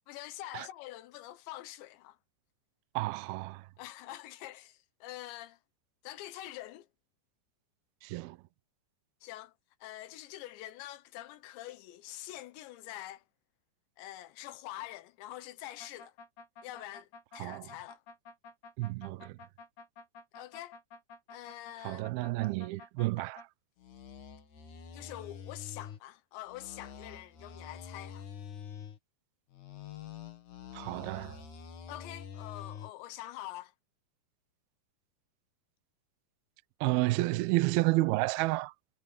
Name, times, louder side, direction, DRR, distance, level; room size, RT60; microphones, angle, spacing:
voice 1, 0.1-2.2 3.8-5.6 6.0-6.9 9.2-9.5 9.8-13.2 14.0-16.2 16.6-18.0 20.4-20.8 21.3-22.1 24.9-28.3 31.9-33.7, left 14 dB, 85° left, 3.4 m, -45 dB
voice 2, 3.0-3.6 8.0-8.4 17.4-17.7 18.8-19.3 21.8-23.4 30.7-31.4 36.8-38.7, right 20 dB, 85° right, 2.2 m, -30 dB
sound 1, 15.8-23.5 23.8-26.0 26.5-29.0 29.5-32.9, left 7 dB, 55° left, 2.8 m, -47 dB
omnidirectional pair, 5.0 m